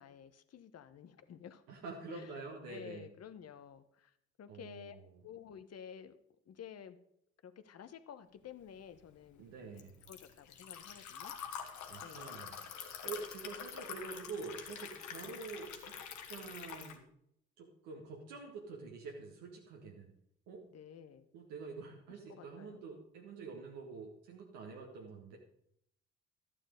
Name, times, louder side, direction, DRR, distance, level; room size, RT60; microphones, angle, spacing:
voice 1, 0.0-1.6 2.1-2.3 2.7-4.1 4.4-5.0 5.2-6.2 6.4-7.0 7.4-9.4 9.7-11.3 12.0-12.4 20.7-21.3 22.3-22.8, left 8 dB, 50° left, 11 dB, 1.1 m, -52 dB
voice 2, 1.7-3.1 4.5-5.2 9.4-10.1 11.9-15.9 16.3-17.0 17.6-20.1 20.5-20.6 21.3-25.4, right 4 dB, 80° right, -1 dB, 1.6 m, -47 dB
Liquid, 8.7-17.0, left 7 dB, 70° left, 1.5 m, -46 dB
12.0 x 8.7 x 5.1 m, 0.73 s
hypercardioid pair, 50°, 31 cm